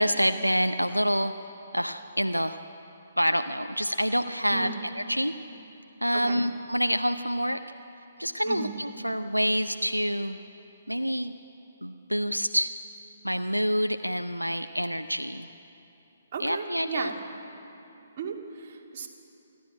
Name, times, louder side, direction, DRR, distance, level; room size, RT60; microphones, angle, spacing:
voice 1, 0.0-1.3 1.7-2.6 3.2-5.3 6.0-7.6 8.2-10.4 10.9-11.3 11.8-12.7 13.2-15.5 16.4-17.1, equal, 90° right, 9 dB, 0.6 m, -27 dB
voice 2, 16.3-17.1 18.2-19.1, right 5 dB, 40° right, 1 dB, 2.4 m, -35 dB
28.0 x 12.0 x 8.8 m, 2.9 s
figure-of-eight pair, 130°, 0 cm